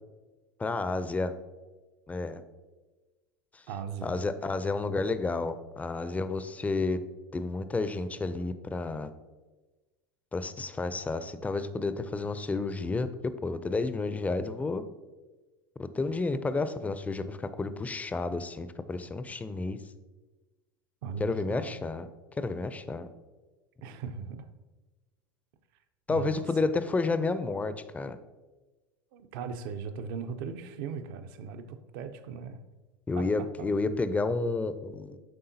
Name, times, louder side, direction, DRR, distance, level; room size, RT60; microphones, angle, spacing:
voice 1, 0.6-1.3 2.1-2.4 3.5-3.6 4.0-7.0 7.3-9.1 10.3-14.8 15.8-19.8 21.2-22.1 22.4-23.1 26.1-28.2 33.1-35.2, left 3 dB, 10° left, 12 dB, 0.4 m, -31 dB
voice 2, 3.7-4.2 21.0-21.7 23.8-24.5 26.1-26.5 29.1-32.6 33.2-33.7, right 6 dB, 60° right, 9 dB, 0.6 m, -38 dB
9.5 x 3.7 x 2.7 m, 1.2 s
hypercardioid pair, 90°, 12 cm